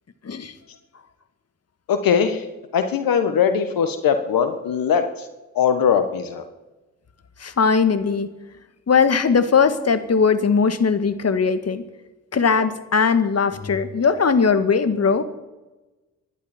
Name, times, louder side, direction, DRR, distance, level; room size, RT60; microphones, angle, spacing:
voice 1, 1.9-2.5 2.7-5.3 5.6-6.4, left 7 dB, 65° left, 8 dB, 1.6 m, -20 dB
voice 2, 7.4-8.3 8.9-11.8 12.3-15.2, left 5 dB, 40° left, 10 dB, 1.9 m, -19 dB
25.0 x 11.5 x 4.5 m, 1.1 s
hypercardioid pair, 45°, 38 cm